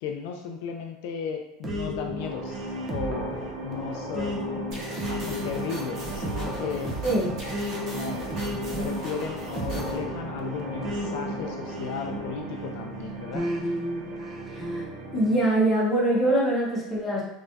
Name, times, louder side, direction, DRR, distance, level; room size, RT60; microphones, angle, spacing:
voice 1, 0.0-3.3 3.6-4.4 5.1-7.0 7.4-7.5 7.8-8.3 8.8-13.5, left 6 dB, 70° left, 3 dB, 0.4 m, -35 dB
sound 1, 1.6-12.7 13.3-14.9, equal, 20° right, 0.6 m, -34 dB
sound 2, 2.2-15.5, right 2 dB, 60° right, 0.8 m, -37 dB
sound 3, 4.7-10.0, equal, 45° right, 1.3 m, -41 dB
voice 2, 14.5-14.8 15.1-17.2, right 1 dB, 15° left, -5 dB, 1.0 m, -23 dB
3.4 x 3.3 x 2.6 m, 0.82 s
supercardioid pair, 160°, 0 cm